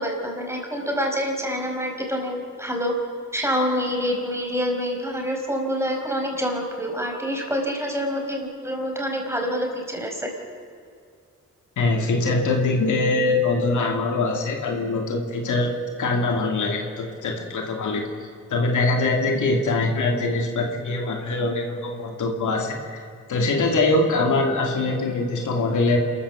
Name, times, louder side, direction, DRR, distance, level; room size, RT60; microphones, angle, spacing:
voice 1, 0.0-2.9 3.3-10.3, equal, 10° right, 1 dB, 4.8 m, -26 dB
voice 2, 11.8-18.1 18.5-23.0 23.3-26.0, left 2 dB, 90° left, 2 dB, 2.5 m, -23 dB
28.5 x 14.0 x 7.1 m, 2.4 s
cardioid pair, 80°, 30 cm